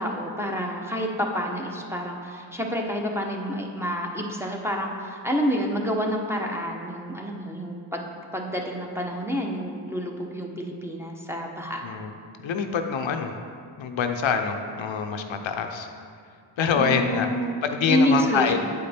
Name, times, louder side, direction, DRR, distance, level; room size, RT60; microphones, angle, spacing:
voice 1, 0.0-11.8 16.8-17.5 17.9-18.6, equal, 5° right, 0 dB, 0.9 m, -28 dB
voice 2, 11.8-13.3 13.8-15.9 16.6-17.3 17.6-18.6, left 6 dB, 85° left, 5 dB, 0.6 m, -25 dB
8.3 x 5.1 x 4.3 m, 2.2 s
cardioid pair, 65°, 45 cm